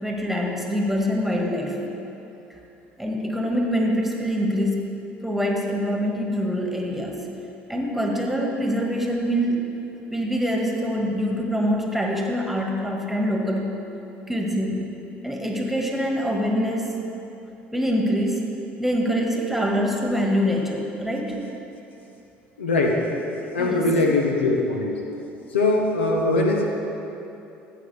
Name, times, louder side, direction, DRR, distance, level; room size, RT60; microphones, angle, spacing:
voice 1, 0.0-1.8 2.5-2.6 3.0-5.0 5.2-7.2 7.7-9.6 10.1-13.7 14.3-14.9 15.2-17.0 17.7-18.5 18.8-21.4 23.6-23.9, equal, ahead, 0 dB, 1.7 m, -24 dB
voice 2, 22.6-23.1 23.5-25.0 25.5-26.6, left 2 dB, 80° left, 0 dB, 1.0 m, -21 dB
14.0 x 8.8 x 3.4 m, 2.8 s
figure-of-eight pair, 65°, 6 cm